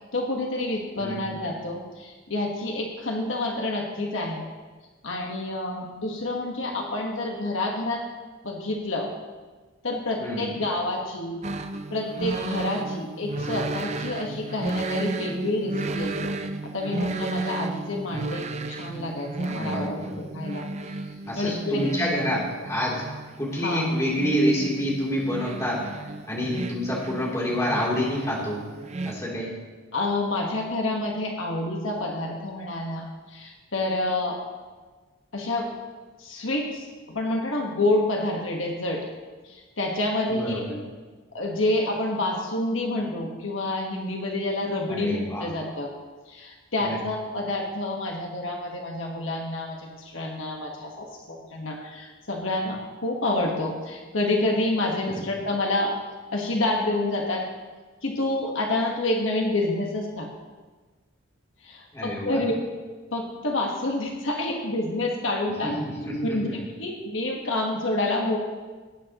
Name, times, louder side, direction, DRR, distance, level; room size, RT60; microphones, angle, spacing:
voice 1, 0.1-4.5 5.0-8.0 8.4-9.1 9.8-11.4 11.9-16.3 16.6-21.0 21.3-21.9 23.6-23.9 29.9-34.4 35.3-35.7 36.2-39.0 39.4-40.6 41.3-45.9 46.3-56.0 56.3-57.4 58.0-60.3 61.6-62.5 63.1-65.7 66.2-68.4, left 2 dB, 75° left, 0 dB, 1.5 m, -28 dB
voice 2, 10.2-10.5 19.6-20.1 21.3-23.0 23.4-25.9 26.3-28.6 29.0-29.6 40.3-40.7 44.9-45.5 46.8-47.0 61.9-62.4 65.6-65.7 66.0-66.6, equal, 15° left, -6 dB, 3.2 m, -27 dB
sound 1, 11.4-29.2, right 2 dB, 35° right, 0.5 m, -33 dB
18.5 x 9.1 x 3.0 m, 1.3 s
head